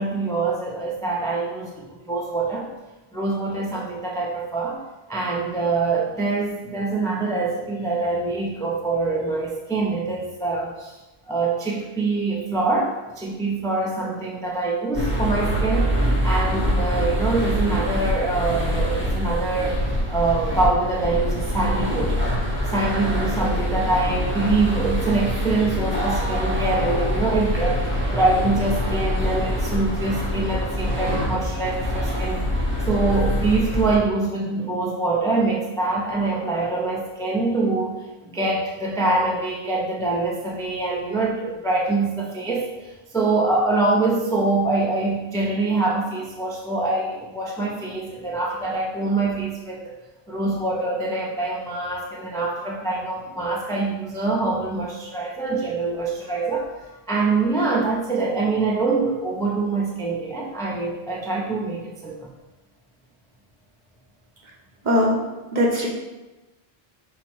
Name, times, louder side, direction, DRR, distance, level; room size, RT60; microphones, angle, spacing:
voice 1, 0.0-2.7 3.1-4.8 5.1-11.0 11.3-19.8 20.1-22.2 22.6-32.6 32.9-49.9 50.3-62.3, right 3 dB, 5° left, -3 dB, 0.3 m, -24 dB
sound 1, 14.9-34.0, equal, 15° right, 0.8 m, -24 dB
voice 2, 64.8-65.2 65.5-65.9, left 1 dB, 50° right, -2 dB, 0.9 m, -19 dB
5.6 x 2.1 x 4.5 m, 1.1 s
omnidirectional pair, 1.0 m